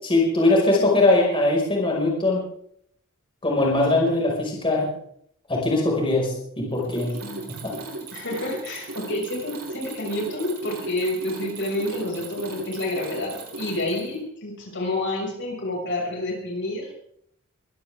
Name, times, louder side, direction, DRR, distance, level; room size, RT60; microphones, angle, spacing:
voice 1, 0.0-2.4 3.4-4.9 5.5-7.1 7.5-7.7, left 2 dB, 25° left, -3 dB, 5.5 m, -21 dB
Mechanisms, 6.7-14.2, right 3 dB, 85° right, 6.7 m, -37 dB
voice 2, 8.1-16.9, left 1 dB, 60° left, 0 dB, 6.2 m, -29 dB
23.5 x 17.0 x 3.6 m, 0.69 s
head